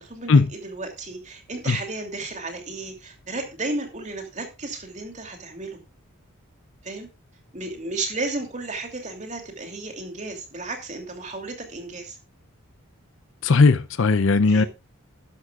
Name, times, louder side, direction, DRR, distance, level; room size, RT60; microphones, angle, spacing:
voice 1, 0.0-5.8 6.8-7.1 7.5-12.2 14.5-14.7, right 2 dB, 30° right, 2.8 m, -33 dB
voice 2, 13.4-14.6, left 4 dB, 60° left, 0.6 m, -17 dB
13.0 x 11.0 x 2.4 m
head